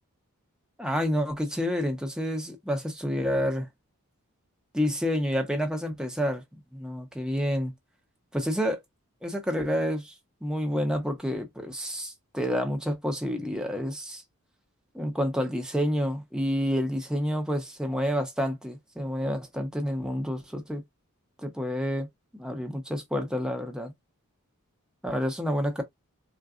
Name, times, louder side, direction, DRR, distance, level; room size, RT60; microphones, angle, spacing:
voice 1, 0.8-3.7 4.7-7.7 8.3-8.8 9.2-10.1 10.4-14.2 14.9-20.8 21.4-22.1 22.3-23.9 25.0-25.8, equal, 5° right, 0.8 m, -29 dB
3.9 x 2.3 x 2.4 m
head